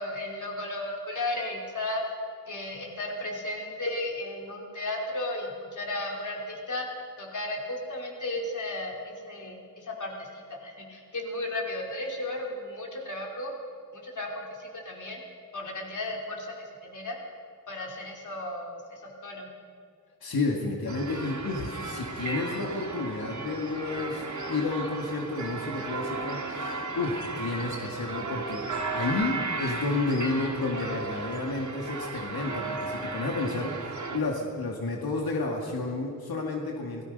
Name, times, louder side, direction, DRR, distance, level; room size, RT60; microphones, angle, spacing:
voice 1, 0.0-2.0 2.5-6.8 7.2-13.5 13.9-15.2 15.5-16.5 16.8-17.2 17.7-19.5, left 1 dB, 55° left, 0 dB, 3.5 m, -34 dB
voice 2, 20.2-37.0, left 3 dB, 85° left, 0 dB, 2.2 m, -31 dB
sound 1, 20.9-34.2, right 3 dB, 55° right, 2.7 m, -35 dB
27.5 x 18.5 x 5.4 m, 2.3 s
wide cardioid pair, 125°, 36 cm